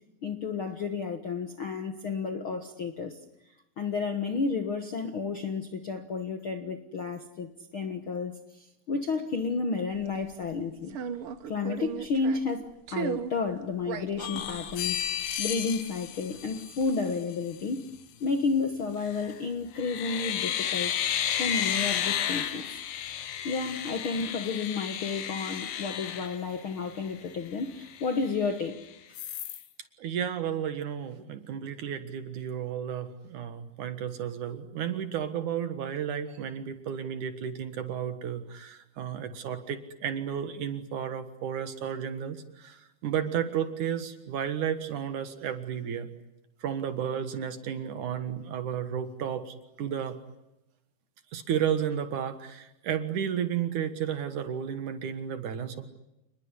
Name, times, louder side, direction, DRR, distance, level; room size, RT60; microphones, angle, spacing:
voice 1, 0.2-3.2 3.8-11.0 11.5-15.0 15.4-17.9 18.2-21.0 21.4-22.7 23.4-28.7, left 4 dB, 55° left, 7 dB, 1.5 m, -31 dB
sound 1, 10.0-10.4 10.9-12.6 12.9-13.4 13.8-16.1 16.3-16.9, right 7 dB, 85° right, 1.2 m, -37 dB
sound 2, 14.2-17.2 19.0-19.4 19.8-27.0 27.5-27.6 27.8-28.7 29.1-29.6, left 10 dB, 75° left, 3.3 m, -33 dB
voice 2, 30.0-46.1 46.6-50.2 51.3-55.8, right 8 dB, 60° right, 10 dB, 2.7 m, -32 dB
28.5 x 21.0 x 9.9 m, 0.90 s
omnidirectional pair, 4.5 m